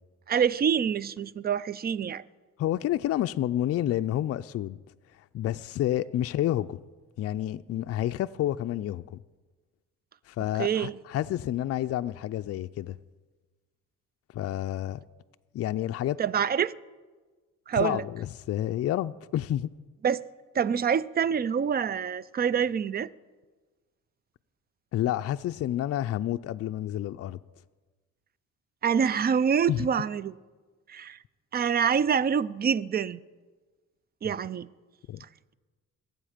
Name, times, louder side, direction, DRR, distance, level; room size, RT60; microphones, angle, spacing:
voice 1, 0.3-2.2 10.6-10.9 16.2-16.7 17.7-18.0 20.0-20.2 20.5-23.1 28.8-30.3 30.9-31.2 31.5-33.2 34.2-34.7, right 7 dB, 30° right, 0.4 m, -26 dB
voice 2, 2.6-4.8 5.3-6.8 7.2-9.2 10.3-13.0 14.3-15.0 15.5-16.2 17.8-19.7 24.9-27.4 29.7-29.9 35.1-35.2, left 12 dB, 50° left, 0.4 m, -29 dB
22.0 x 7.9 x 5.0 m
cardioid pair, 90°, 30 cm